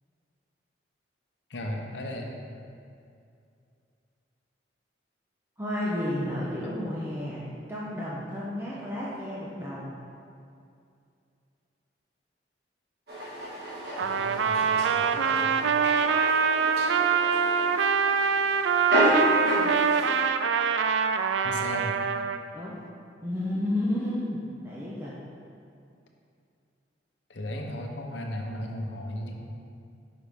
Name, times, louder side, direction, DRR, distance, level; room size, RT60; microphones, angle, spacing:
voice 1, 1.5-2.3 14.0-15.9 21.4-22.0 27.3-29.5, left 1 dB, 75° left, 1 dB, 0.9 m, -36 dB
voice 2, 5.6-7.4 7.7-9.9 22.5-22.8 23.2-25.2, left 1 dB, 10° right, -8 dB, 0.8 m, -31 dB
sound 1, 13.1-20.3, equal, 60° right, 1.7 m, -31 dB
Trumpet, 14.0-22.4, right 6 dB, 80° right, 0.3 m, -24 dB
8.5 x 5.6 x 3.6 m, 2.4 s
head